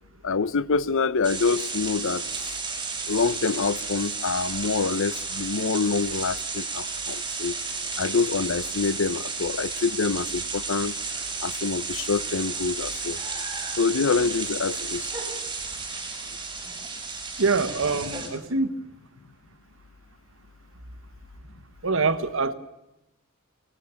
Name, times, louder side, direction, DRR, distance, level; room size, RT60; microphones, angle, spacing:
voice 1, 0.2-2.5 3.1-7.6 8.0-11.0 11.4-13.2 13.8-15.1, left 4 dB, 65° left, 0.7 m, -26 dB
sound 1, 1.2-18.3, right 4 dB, 20° right, 5.9 m, -32 dB
voice 2, 17.4-18.7 21.8-22.5, right 4 dB, 65° right, 1.4 m, -24 dB
24.0 x 18.5 x 7.0 m
head